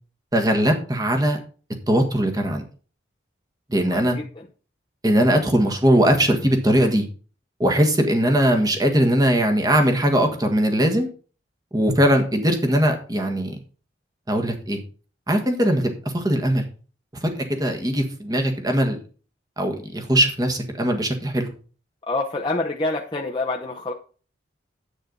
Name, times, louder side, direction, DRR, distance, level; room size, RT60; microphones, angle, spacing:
voice 1, 0.3-1.4 1.9-2.6 3.7-4.2 5.0-7.0 7.6-11.1 11.7-13.6 14.3-14.8 15.3-16.6 17.2-19.0 19.6-21.5, equal, 20° right, 4 dB, 1.6 m, -20 dB
voice 2, 3.7-4.3 22.1-23.9, left 2 dB, 25° left, -1 dB, 0.8 m, -27 dB
10.0 x 8.5 x 4.0 m, 0.39 s
head